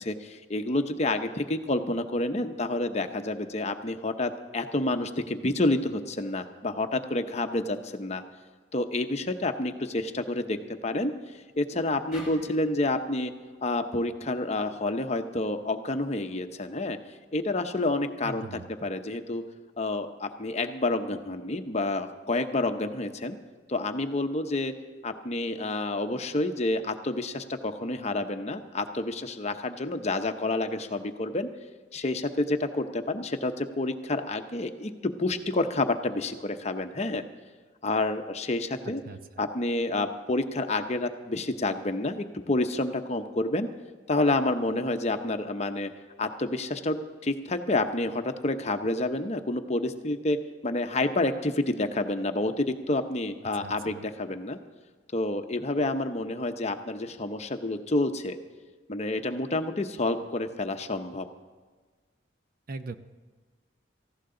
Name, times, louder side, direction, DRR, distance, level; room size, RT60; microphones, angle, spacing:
voice 1, 0.0-8.2 8.7-11.1 11.6-13.3 13.6-17.0 17.3-19.4 19.8-23.4 23.7-24.7 25.0-31.5 31.9-37.2 37.8-39.0 39.4-43.7 44.1-45.9 46.2-50.4 50.6-54.6 55.1-58.4 58.9-61.2, left 2 dB, 35° left, 7 dB, 0.8 m, -29 dB
sound 1, 12.1-15.3, left 1 dB, 5° right, 5.0 m, -48 dB
voice 2, 18.2-18.6 38.8-39.2 53.6-54.0 62.7-63.0, right 3 dB, 50° right, 10 dB, 0.6 m, -40 dB
18.5 x 15.0 x 3.8 m, 1.4 s
head